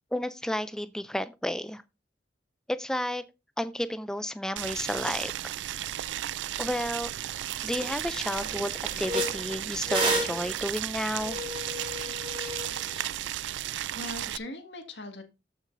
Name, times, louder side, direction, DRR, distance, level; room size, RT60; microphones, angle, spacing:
voice 1, 0.1-1.8 2.7-3.2 3.6-5.5 6.6-7.1 7.6-11.4, left 1 dB, 5° left, 0.3 m, -32 dB
Boiling, 4.6-14.4, right 12 dB, 90° right, 0.3 m, -34 dB
sound 1, 7.3-7.4 7.7-8.0 8.3-13.1, right 1 dB, 30° right, 3.6 m, -33 dB
voice 2, 13.9-15.2, left 2 dB, 80° left, 1.8 m, -41 dB
14.0 x 6.2 x 2.6 m
head